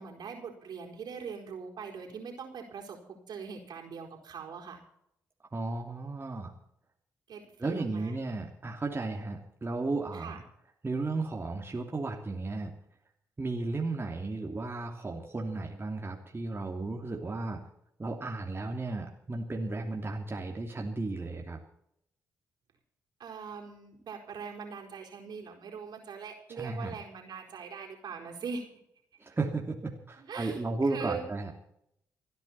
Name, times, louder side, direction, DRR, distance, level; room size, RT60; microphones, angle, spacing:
voice 1, 0.0-4.8 7.3-8.1 10.1-10.4 23.2-28.7 30.2-30.6 30.9-31.3, right 5 dB, 60° right, 2 dB, 4.4 m, -42 dB
voice 2, 5.5-6.5 7.6-10.4 10.8-12.7 13.4-17.6 18.0-21.6 26.5-26.9 29.2-31.5, right 3 dB, 30° right, 1 dB, 2.9 m, -34 dB
28.5 x 9.9 x 4.4 m, 0.75 s
hypercardioid pair, 40°, 8 cm